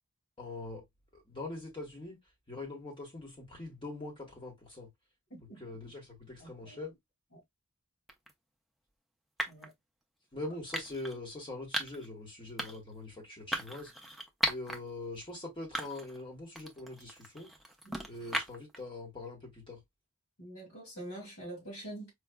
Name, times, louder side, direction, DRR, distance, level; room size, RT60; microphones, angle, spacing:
voice 1, 0.4-0.8 1.1-2.2 2.5-4.9 5.4-6.9 10.3-17.5 18.1-19.8, left 2 dB, 25° left, 1.1 m, -43 dB
voice 2, 5.3-5.6 6.4-6.9 7.3-7.4 9.5-9.7 17.8-18.1 20.4-22.1, right 1 dB, 75° left, 2.1 m, -46 dB
sound 1, 8.1-8.3 9.4-9.7 10.7-11.2 11.7-12.1 12.6-12.9 13.5-14.8 15.2-15.3 15.7-16.2 16.6-18.8, equal, ahead, 0.4 m, -37 dB
4.7 x 2.3 x 2.2 m
head